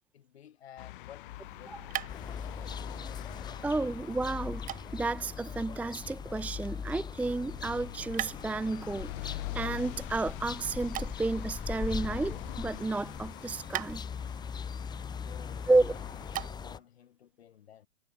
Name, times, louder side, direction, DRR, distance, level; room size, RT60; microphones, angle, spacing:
voice 1, 0.1-2.3 15.2-16.0 16.4-17.9, left 10 dB, 70° left, 5.3 m, -54 dB
sound 1, 0.8-16.5, left 17 dB, 50° left, 1.7 m, -45 dB
sound 2, 1.2-16.9, right 13 dB, 25° right, 1.8 m, -45 dB
sound 3, 2.1-16.8, left 6 dB, 15° left, 1.6 m, -40 dB
voice 2, 3.6-4.7 4.9-14.1 15.7-15.9, right 3 dB, 5° right, 0.7 m, -31 dB
hypercardioid pair, 130°, 32 cm